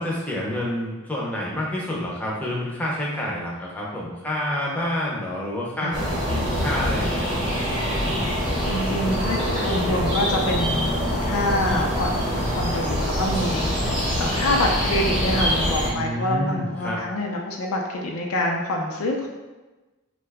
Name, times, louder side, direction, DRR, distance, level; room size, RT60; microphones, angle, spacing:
voice 1, 0.0-7.6 15.9-17.0, left 1 dB, 5° left, -4 dB, 0.5 m, -28 dB
sound 1, 5.9-15.9, equal, 25° right, 0.8 m, -24 dB
voice 2, 8.6-19.3, left 1 dB, 90° left, 1 dB, 0.4 m, -26 dB
2.7 x 2.2 x 3.3 m, 1.2 s
head